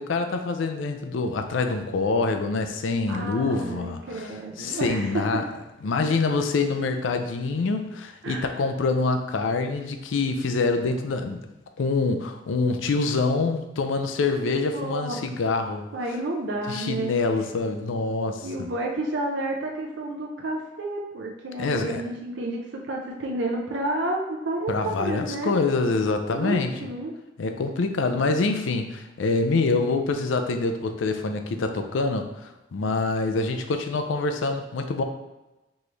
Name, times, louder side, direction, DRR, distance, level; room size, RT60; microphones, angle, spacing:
voice 1, 0.0-5.4 5.8-11.4 11.8-15.8 16.7-18.7 21.6-22.0 24.7-26.7 27.4-35.0, left 3 dB, 85° left, 6 dB, 0.4 m, -25 dB
voice 2, 3.1-5.2 8.2-8.5 14.3-14.4 14.7-15.2 15.9-17.1 18.4-25.5 26.3-27.1 28.1-28.3, right 2 dB, 70° right, 0 dB, 0.5 m, -30 dB
4.3 x 3.1 x 3.3 m, 1.0 s
head